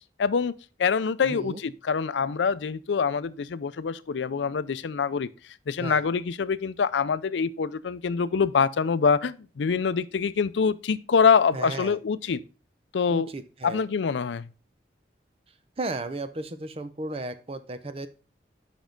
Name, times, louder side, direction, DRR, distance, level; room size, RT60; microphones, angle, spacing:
voice 1, 0.2-0.5 0.8-5.3 5.7-12.4 12.9-13.3 13.6-14.5, left 5 dB, 90° left, 0.4 m, -25 dB
voice 2, 1.2-1.6 5.8-6.0 11.5-12.0 13.1-13.8 15.8-18.1, right 2 dB, 35° right, 0.6 m, -34 dB
7.2 x 5.4 x 3.7 m
head